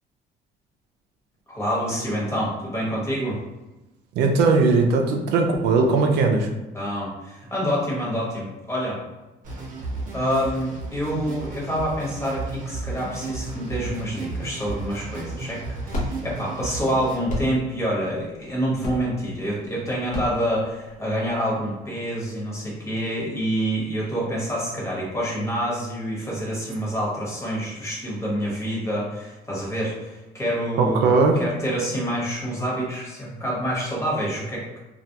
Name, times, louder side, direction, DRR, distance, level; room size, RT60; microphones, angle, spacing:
voice 1, 1.5-3.4 6.7-9.0 10.1-31.1 31.4-34.6, equal, 15° left, -5 dB, 1.1 m, -27 dB
voice 2, 4.2-6.5 30.8-31.4, right 3 dB, 80° right, 3 dB, 0.4 m, -19 dB
sound 1, 9.4-17.2, right 3 dB, 50° right, 0.7 m, -34 dB
sound 2, 15.9-21.3, left 1 dB, 50° left, 0.6 m, -33 dB
2.3 x 2.2 x 2.7 m, 1.1 s
cardioid pair, 110°, 17 cm